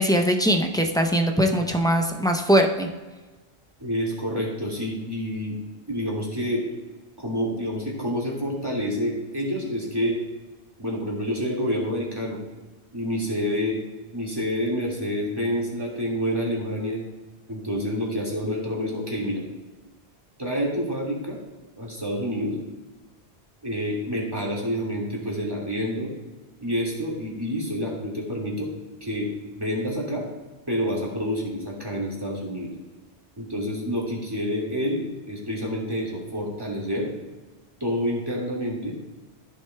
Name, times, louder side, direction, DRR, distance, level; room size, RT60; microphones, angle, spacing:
voice 1, 0.0-2.9, equal, 5° left, 2 dB, 0.4 m, -21 dB
voice 2, 3.8-5.6 5.9-6.7 7.2-10.2 10.8-12.4 12.9-13.8 14.1-17.0 17.5-19.4 20.4-21.4 21.8-22.6 23.6-26.1 26.6-28.7 29.0-30.2 30.7-32.7 33.4-37.1 37.8-39.0, equal, 20° right, -2 dB, 2.0 m, -28 dB
14.0 x 6.5 x 2.2 m, 1.2 s
omnidirectional pair, 1.1 m